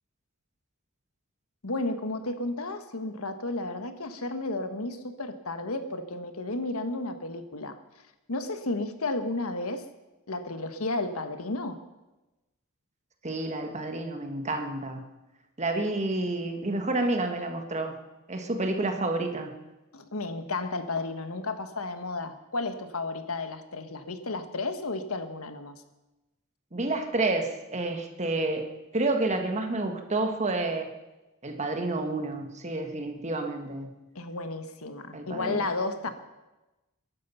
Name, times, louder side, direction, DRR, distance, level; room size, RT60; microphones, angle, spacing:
voice 1, 1.6-7.8 8.3-9.9 10.3-11.8 19.9-25.7 34.1-36.1, left 2 dB, 80° left, 9 dB, 1.4 m, -33 dB
voice 2, 13.2-15.1 15.6-18.0 18.3-19.5 26.7-30.9 31.4-33.9 35.1-35.6, right 2 dB, 30° right, 5 dB, 1.6 m, -29 dB
22.0 x 11.5 x 5.6 m, 1.0 s
head